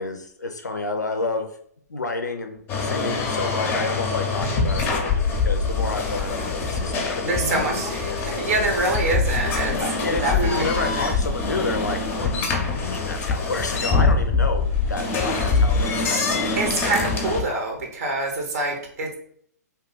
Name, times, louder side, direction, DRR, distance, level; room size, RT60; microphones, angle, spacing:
voice 1, 0.0-1.6 1.9-8.3 9.7-16.6, left 3 dB, 90° left, 6 dB, 0.4 m, -30 dB
sound 1, 2.7-17.4, left 4 dB, 25° left, 0.6 m, -24 dB
voice 2, 7.2-9.8 10.1-11.1 16.6-19.1, right 2 dB, 60° right, 2 dB, 0.8 m, -26 dB
2.7 x 2.3 x 3.8 m, 0.64 s
figure-of-eight pair, 120°, 9 cm